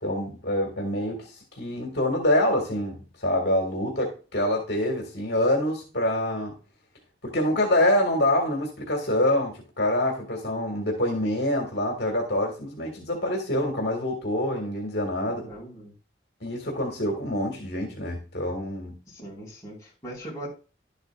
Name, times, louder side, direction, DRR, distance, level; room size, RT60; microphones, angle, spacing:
voice 1, 0.0-6.5 7.2-15.4 16.4-19.0, left 1 dB, 65° left, 2.0 m, -26 dB
voice 2, 15.4-15.9 19.1-20.5, right 1 dB, 20° left, 4.7 m, -40 dB
11.5 x 8.1 x 2.5 m
head